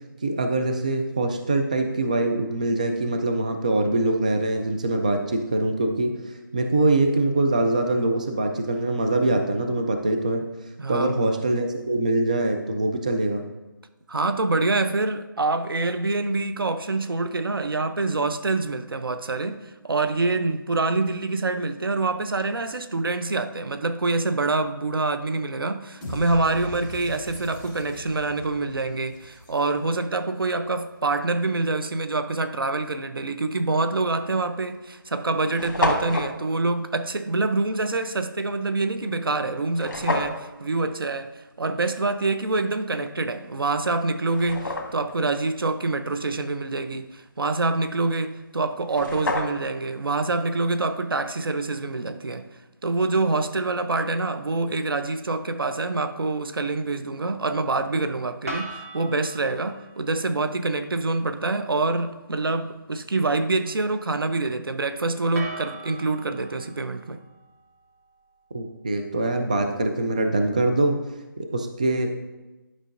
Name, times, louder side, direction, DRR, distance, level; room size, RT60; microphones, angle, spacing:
voice 1, 0.2-6.1 6.5-10.4 10.9-13.4 68.5-71.0 71.4-72.1, right 2 dB, 20° right, 0.3 m, -23 dB
voice 2, 10.8-11.4 14.1-41.3 41.6-52.5 52.8-67.2, right 3 dB, 90° right, 0.7 m, -26 dB
sound 1, 26.0-30.1, left 1 dB, ahead, 1.0 m, -40 dB
sound 2, 34.0-34.1 34.9-35.0 35.1-35.2 35.4-36.3 39.8-40.4 43.3-43.4 44.0-45.1 48.5-48.6 48.8-49.8, left 2 dB, 60° left, 1.5 m, -28 dB
sound 3, 58.5-60.5 65.3-68.5, right 2 dB, 40° right, 1.2 m, -40 dB
11.0 x 5.4 x 2.6 m
figure-of-eight pair, 170°, 12 cm